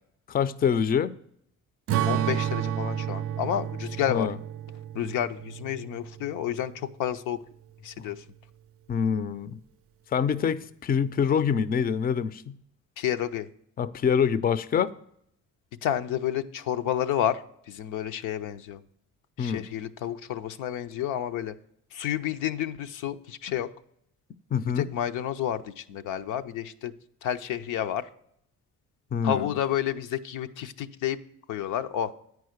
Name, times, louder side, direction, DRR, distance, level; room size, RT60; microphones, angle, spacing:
voice 1, 0.3-1.1 4.1-4.4 8.9-9.6 10.1-12.6 13.8-14.9 19.4-19.6 24.5-24.9 29.1-29.6, left 7 dB, 30° left, 0.4 m, -25 dB
Strum, 1.9-6.5, right 11 dB, 50° right, 0.4 m, -31 dB
voice 2, 2.1-4.3 4.9-6.7 7.0-7.4 7.8-8.2 13.0-13.5 15.8-17.4 17.7-18.8 19.4-21.5 21.9-23.7 24.8-26.9 27.2-28.1 29.2-31.2 31.5-32.1, left 10 dB, 90° left, 0.6 m, -30 dB
9.3 x 4.7 x 6.4 m
cardioid pair, 90°, 30 cm